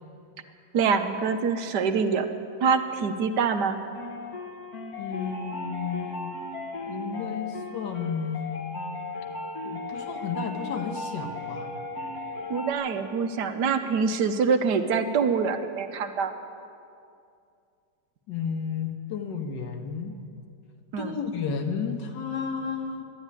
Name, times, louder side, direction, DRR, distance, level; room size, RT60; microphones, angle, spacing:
voice 1, 0.7-2.3 2.6-3.8 12.5-16.3 20.9-21.2, right 5 dB, 75° right, 8 dB, 1.5 m, -25 dB
sound 1, 3.9-12.7, left 2 dB, 60° left, 2.0 m, -36 dB
voice 2, 5.0-6.3 6.9-8.5 9.6-11.7 18.3-20.2 21.0-23.0, left 6 dB, 85° left, 4 dB, 1.9 m, -32 dB
12.0 x 11.5 x 9.6 m, 2.5 s
omnidirectional pair, 1.9 m